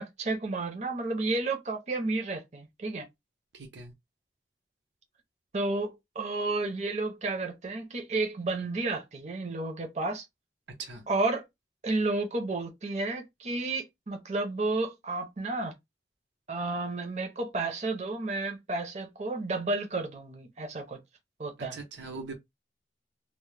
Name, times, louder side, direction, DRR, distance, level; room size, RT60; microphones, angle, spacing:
voice 1, 0.0-3.1 5.5-10.3 11.1-11.4 11.8-15.7 16.5-21.0 21.4-21.8, right 2 dB, 40° right, 0.5 m, -31 dB
voice 2, 3.5-3.9 10.8-11.0 21.6-22.4, right 3 dB, 85° right, 0.7 m, -41 dB
2.1 x 2.0 x 3.1 m
head